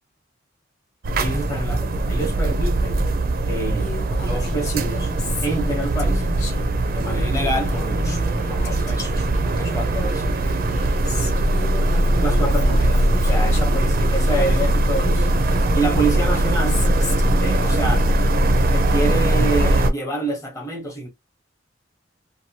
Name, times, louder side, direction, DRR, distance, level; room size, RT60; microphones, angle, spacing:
sound 1, 1.0-19.9, right 1 dB, 50° right, 0.5 m, -20 dB
voice 1, 1.2-3.0 3.4-3.9 4.2-5.1 5.4-6.2 6.9-8.2 8.5-10.2 12.2-15.3 15.7-16.8 17.4-18.0 18.7-21.1, right 2 dB, 15° left, 0.9 m, -27 dB
Female speech woman speaking, 3.8-13.9 14.2-18.1, left 1 dB, 40° left, 1.0 m, -35 dB
2.7 x 2.3 x 2.7 m
head